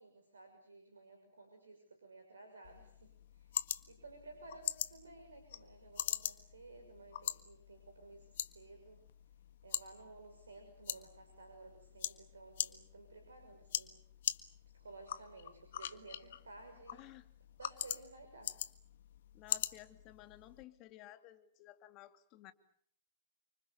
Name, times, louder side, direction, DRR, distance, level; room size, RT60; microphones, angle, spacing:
voice 1, 0.0-9.0 9.6-13.9 14.8-17.1 17.6-18.6, right 3 dB, 85° right, 5 dB, 6.2 m, -55 dB
sound 1, 2.6-20.6, left 11 dB, 65° left, 1.6 m, -43 dB
voice 2, 16.9-17.3 19.3-22.5, left 15 dB, 40° left, 10 dB, 2.7 m, -55 dB
29.0 x 25.5 x 6.9 m, 0.65 s
hypercardioid pair, 115°, 0 cm